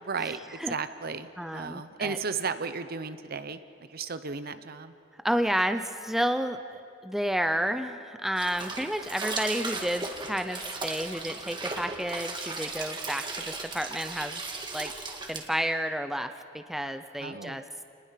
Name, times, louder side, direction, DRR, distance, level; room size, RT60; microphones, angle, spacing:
voice 1, 0.0-4.9 17.2-17.6, right 5 dB, 55° right, 11 dB, 0.9 m, -35 dB
voice 2, 1.4-2.2 5.2-14.4 14.7-14.9 15.3-17.6, equal, ahead, 8 dB, 0.7 m, -31 dB
sound 1, 8.4-15.4, right 3 dB, 25° right, 1.9 m, -36 dB
29.5 x 19.5 x 5.8 m, 2.4 s
head